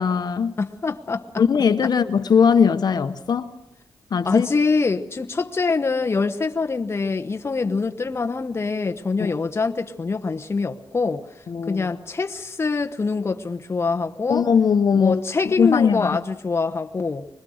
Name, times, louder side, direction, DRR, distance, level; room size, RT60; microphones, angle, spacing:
voice 1, 0.0-0.5 1.4-3.5 4.1-4.5 9.2-9.3 11.5-11.9 14.3-16.2, left 6 dB, 55° left, 1.0 m, -20 dB
voice 2, 0.6-1.3 4.2-14.4 14.9-17.3, left 4 dB, 30° left, 1.0 m, -24 dB
25.0 x 21.5 x 6.5 m
wide cardioid pair, 125°, 8 cm